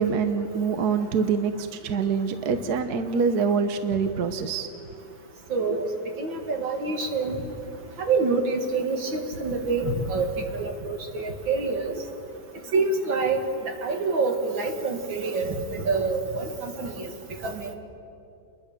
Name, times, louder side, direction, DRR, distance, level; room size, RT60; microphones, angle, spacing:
voice 1, 0.0-4.7 5.7-5.8, right 5 dB, 60° right, 8 dB, 1.4 m, -25 dB
voice 2, 5.5-5.8 6.2-7.4 8.0-10.3 10.6-11.9 12.7-13.4 13.8-17.1 17.4-17.7, right 4 dB, 80° right, 3 dB, 2.9 m, -26 dB
29.5 x 22.0 x 6.8 m, 2.6 s
omnidirectional pair, 2.1 m